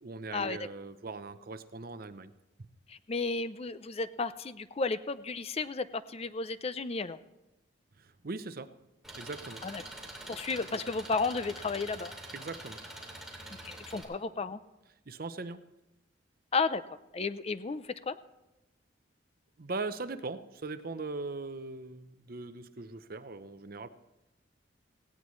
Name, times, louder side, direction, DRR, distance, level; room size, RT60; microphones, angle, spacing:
voice 1, 0.0-2.3 8.0-8.7 9.1-9.6 12.3-12.8 15.1-15.6 19.6-23.9, right 3 dB, 50° right, 11 dB, 0.7 m, -40 dB
voice 2, 2.9-7.2 9.6-9.8 10.3-12.2 13.6-14.6 16.5-16.8 17.1-18.2, left 4 dB, 35° left, 13 dB, 0.5 m, -33 dB
Engine, 9.0-14.0, right 1 dB, ahead, 2.7 m, -45 dB
18.0 x 17.0 x 3.2 m, 0.97 s
head